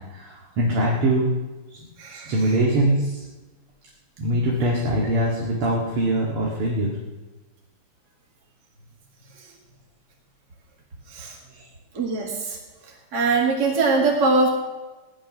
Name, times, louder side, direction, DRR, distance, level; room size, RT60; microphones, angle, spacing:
voice 1, 0.1-1.3 1.7-1.8 2.1-3.2 4.2-6.9 11.5-11.6, right 1 dB, 85° right, -3 dB, 2.9 m, -23 dB
voice 2, 2.0-2.3 11.1-11.4 11.9-12.6 13.1-14.5, right 3 dB, 50° right, -1 dB, 2.4 m, -22 dB
16.0 x 11.5 x 6.1 m, 1.2 s
omnidirectional pair, 2.4 m